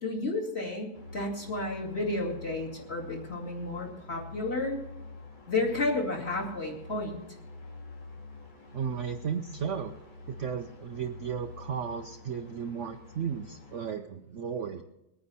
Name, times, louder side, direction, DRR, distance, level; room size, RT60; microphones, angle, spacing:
voice 1, 0.0-4.8 5.5-7.2, left 2 dB, 30° left, -2 dB, 2.7 m, -32 dB
sound 1, 0.9-13.9, left 3 dB, 80° left, 3.2 m, -47 dB
voice 2, 8.7-9.9 10.3-14.8, right 7 dB, 70° right, 6 dB, 0.7 m, -34 dB
22.0 x 9.6 x 4.2 m, 0.88 s
omnidirectional pair, 2.1 m